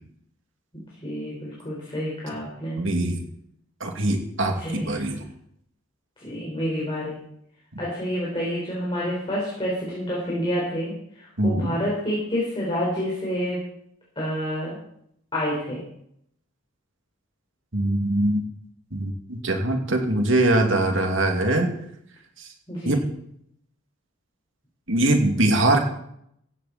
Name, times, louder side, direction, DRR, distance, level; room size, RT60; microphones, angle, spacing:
voice 1, 1.0-2.8 4.6-5.0 6.2-7.2 7.8-13.6 14.1-14.8 15.3-15.8 22.7-23.1, equal, 25° left, -6 dB, 5.0 m, -28 dB
voice 2, 2.8-3.2 3.8-5.2 11.4-11.7 17.7-18.4 18.9-21.7 22.4-22.5 22.8-23.0 24.9-25.8, right 1 dB, 60° right, 3 dB, 2.6 m, -22 dB
15.5 x 15.5 x 4.3 m, 0.73 s
head